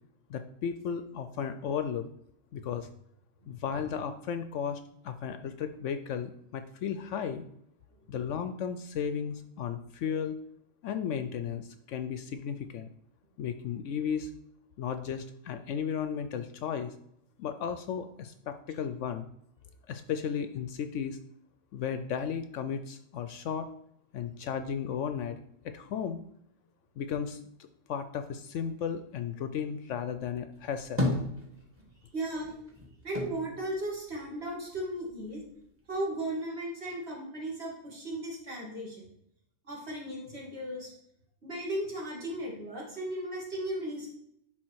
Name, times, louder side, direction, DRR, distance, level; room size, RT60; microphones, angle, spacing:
voice 1, 0.3-2.0 2.5-2.9 3.5-7.4 8.1-10.4 10.8-12.9 13.4-14.3 14.8-16.9 17.4-19.3 19.9-21.2 21.7-23.7 24.1-25.4 25.6-26.2 27.0-27.4 27.9-31.1, left 7 dB, 70° left, 9 dB, 0.8 m, -34 dB
sound 1, 30.5-32.0 32.3-34.7 35.1-36.0, left 1 dB, 10° right, 1.5 m, -34 dB
voice 2, 32.1-32.5 33.0-35.4 35.9-39.0 39.6-40.9 41.4-44.1, right 1 dB, 50° right, -4 dB, 2.7 m, -36 dB
10.5 x 3.9 x 4.7 m, 0.75 s
omnidirectional pair, 1.4 m